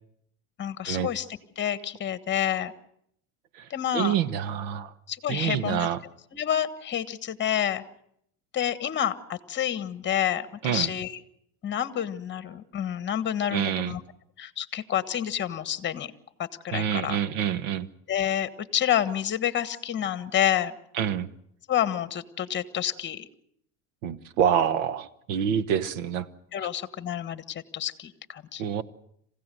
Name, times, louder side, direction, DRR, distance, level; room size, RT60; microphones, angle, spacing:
voice 1, 0.6-1.3 1.6-2.7 3.7-4.2 5.1-5.9 6.3-7.8 8.5-11.2 11.6-14.0 14.4-16.1 16.4-17.2 18.1-20.8 21.7-23.3 26.5-28.6, left 10 dB, 30° left, 13 dB, 1.4 m, -28 dB
voice 2, 3.9-4.9 5.3-6.0 10.6-10.9 13.5-13.9 16.7-17.9 21.0-21.3 24.0-26.3 28.6-28.8, right 9 dB, 80° right, 15 dB, 1.3 m, -27 dB
27.0 x 16.0 x 7.8 m, 0.72 s
supercardioid pair, 120°, 39 cm